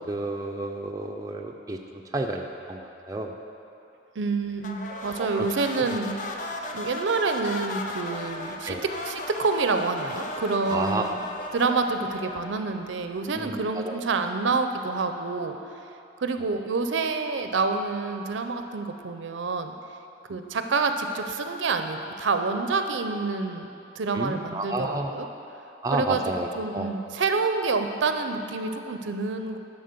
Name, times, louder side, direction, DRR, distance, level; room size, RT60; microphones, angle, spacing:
voice 1, 0.1-1.8 2.1-3.3 4.9-5.5 8.7-8.8 10.7-11.0 11.4-11.5 13.3-14.0 20.3-20.4 24.1-25.2 25.8-26.9, right 2 dB, 20° right, 2 dB, 0.4 m, -31 dB
voice 2, 4.2-6.2 6.7-8.8 9.0-11.2 11.5-15.6 16.2-19.7 20.3-23.7 24.0-25.3 25.9-26.2 26.6-29.6, right 4 dB, 75° right, 7 dB, 0.5 m, -27 dB
sound 1, 4.6-13.1, left 2 dB, 40° left, 0.5 m, -36 dB
10.5 x 4.2 x 6.6 m, 2.9 s
head